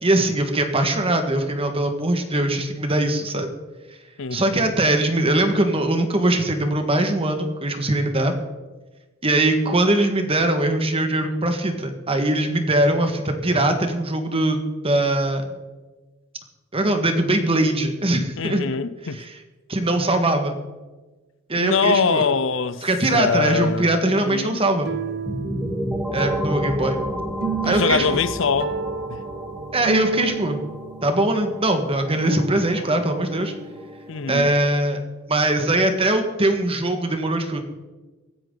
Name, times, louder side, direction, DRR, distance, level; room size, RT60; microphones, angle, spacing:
voice 1, 0.0-3.5 4.3-8.4 9.2-15.4 16.7-18.6 19.1-19.3 19.7-20.6 21.5-22.3 22.8-24.9 26.1-27.0 27.6-28.2 29.7-30.6 31.0-33.5 34.3-35.0 35.3-37.6, right 1 dB, 30° right, 1.8 m, -21 dB
voice 2, 18.4-19.2 21.6-24.6 27.6-28.8 29.1-29.2 34.1-34.5, left 5 dB, 65° left, 0.7 m, -23 dB
sound 1, 24.4-34.1 34.5-34.6, right 5 dB, 55° right, 0.8 m, -33 dB
sound 2, 25.3-34.8, equal, 5° right, 1.4 m, -32 dB
24.5 x 9.6 x 4.0 m
head